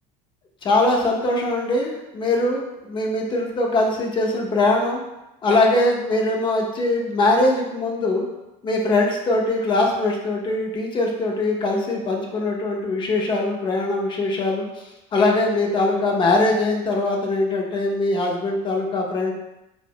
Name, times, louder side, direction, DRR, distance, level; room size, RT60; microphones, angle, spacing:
voice 1, 0.6-5.0 5.4-8.3 8.6-14.7 15.1-19.3, left 2 dB, 30° left, 0 dB, 0.5 m, -21 dB
2.5 x 2.1 x 2.7 m, 0.93 s
cardioid pair, 125°, 15 cm